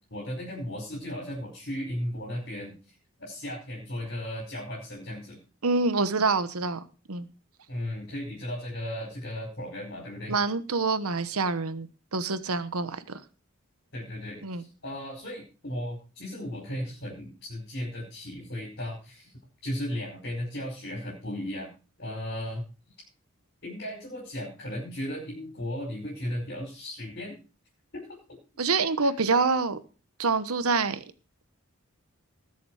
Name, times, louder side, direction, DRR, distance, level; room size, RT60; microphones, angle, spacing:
voice 1, 0.1-5.4 7.7-10.4 13.9-19.3 19.6-21.7 22.0-22.7 23.6-27.4 27.9-28.4 29.0-29.1, equal, 50° left, -3 dB, 5.3 m, -36 dB
voice 2, 5.6-7.3 10.3-13.2 14.4-14.6 28.6-29.8 30.2-31.0, right 4 dB, 80° right, 12 dB, 1.1 m, -26 dB
19.5 x 7.1 x 4.8 m, 0.35 s
head